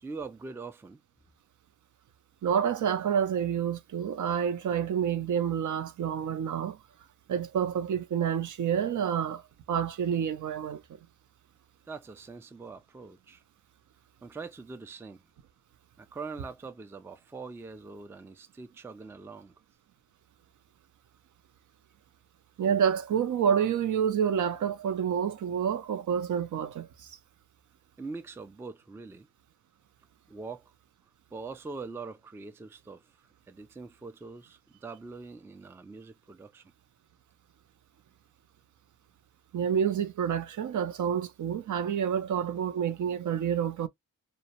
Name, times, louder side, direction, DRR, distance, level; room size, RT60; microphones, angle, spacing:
voice 1, 0.0-1.0 11.9-13.4 14.2-15.2 16.0-19.5 28.0-29.3 30.3-30.7 31.3-33.1 33.5-36.6, right 4 dB, 10° right, 0.3 m, -43 dB
voice 2, 2.4-6.8 7.3-9.4 9.7-10.8 22.6-27.1 39.5-43.9, right 8 dB, 60° right, 0.6 m, -28 dB
2.3 x 2.1 x 2.8 m
cardioid pair, 65°, 33 cm